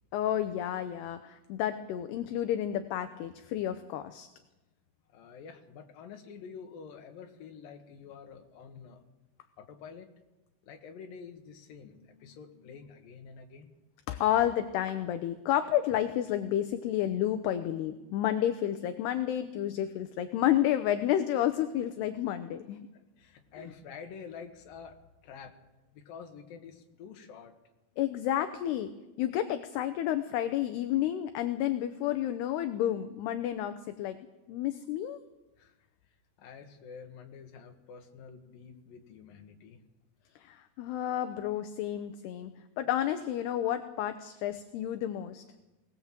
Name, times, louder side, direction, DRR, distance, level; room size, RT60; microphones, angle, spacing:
voice 1, 0.1-4.3 12.2-12.4 14.1-22.9 23.5-23.7 28.0-28.9 29.2-34.2 34.5-35.2 40.4-42.5 42.8-45.4, left 11 dB, 75° left, 9 dB, 2.6 m, -30 dB
voice 2, 5.1-9.0 9.6-10.1 10.6-13.7 23.2-25.6 25.9-27.6 35.6-35.8 36.4-39.8, left 6 dB, 60° left, 4 dB, 3.0 m, -48 dB
22.0 x 19.0 x 7.5 m, 1.0 s
omnidirectional pair, 5.3 m